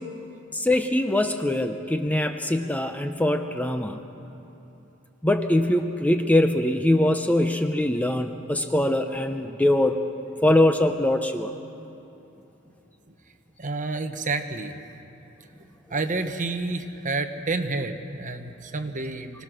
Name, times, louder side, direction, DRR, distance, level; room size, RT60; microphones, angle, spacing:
voice 1, 0.5-4.0 5.2-10.0 10.4-11.5, left 1 dB, 5° left, 7 dB, 0.6 m, -22 dB
voice 2, 13.6-14.8 15.9-19.4, right 3 dB, 35° right, 7 dB, 1.1 m, -29 dB
25.5 x 18.0 x 6.4 m, 2.9 s
head